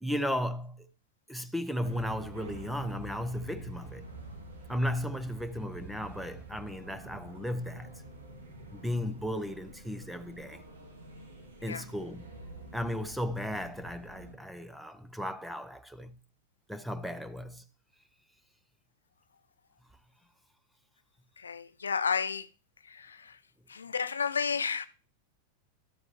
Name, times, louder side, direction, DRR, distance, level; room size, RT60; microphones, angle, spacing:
voice 1, 0.0-0.9 1.3-4.1 4.7-7.9 8.7-10.6 11.6-12.2 12.7-16.2 16.7-17.6, equal, ahead, 0.8 m, -35 dB
sound 1, 1.8-14.3, right 2 dB, 70° right, 2.5 m, -48 dB
voice 2, 21.4-22.5 22.8-23.4 23.7-24.9, left 6 dB, 70° left, 0.5 m, -32 dB
12.5 x 7.4 x 3.1 m
figure-of-eight pair, 90°, 0 cm